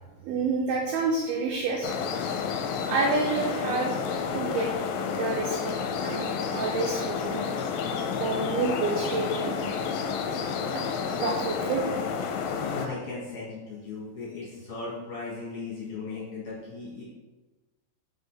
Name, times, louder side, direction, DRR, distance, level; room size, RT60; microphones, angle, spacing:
voice 1, 0.2-2.0 2.8-3.9 4.3-4.8 5.2-7.5 8.2-9.6 10.7-10.8 11.2-11.8, right 4 dB, 90° right, 0 dB, 2.1 m, -29 dB
sound 1, 1.8-12.9, left 6 dB, 85° left, 2.9 m, -30 dB
voice 2, 12.6-17.0, left 4 dB, 50° left, -8 dB, 2.5 m, -37 dB
6.4 x 4.1 x 5.6 m, 1.2 s
omnidirectional pair, 5.4 m